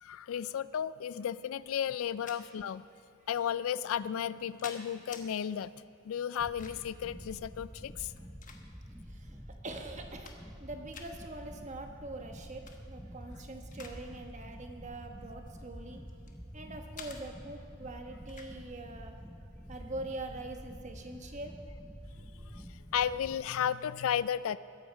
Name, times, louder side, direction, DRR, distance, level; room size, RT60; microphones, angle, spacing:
voice 1, 0.0-2.8 3.3-5.7 6.0-8.1 22.5-22.6 22.9-24.6, left 9 dB, 65° left, 17 dB, 0.3 m, -33 dB
sound 1, 2.0-2.4 3.3-3.5 4.2-5.3 6.3-7.0 7.9-9.0 9.6-9.7 10.0-10.6 10.9-11.1 12.5-12.8 13.2-14.0 14.3-14.5 15.3-16.4 17.0-17.2 18.3-18.5, left 6 dB, 35° left, 1.1 m, -50 dB
sound 2, 6.4-23.4, equal, ahead, 0.7 m, -48 dB
voice 2, 9.1-10.3 10.6-16.0 16.5-19.2 19.7-21.5, right 2 dB, 30° right, 4 dB, 1.2 m, -43 dB
21.0 x 8.6 x 5.2 m, 2.7 s
head